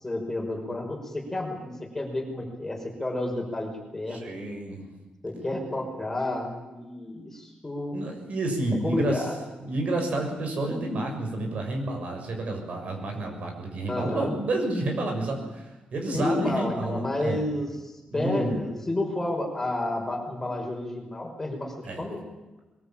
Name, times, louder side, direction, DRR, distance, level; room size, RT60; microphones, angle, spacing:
voice 1, 0.0-4.2 5.2-8.0 8.8-9.4 13.9-14.3 16.1-22.2, left 2 dB, 15° left, 1 dB, 5.4 m, -31 dB
voice 2, 4.1-4.9 7.9-9.2 9.6-17.4 18.1-18.6 21.8-22.0, right 2 dB, 55° right, 3 dB, 6.6 m, -30 dB
22.5 x 22.0 x 8.9 m, 1.1 s
wide cardioid pair, 165°, 3 cm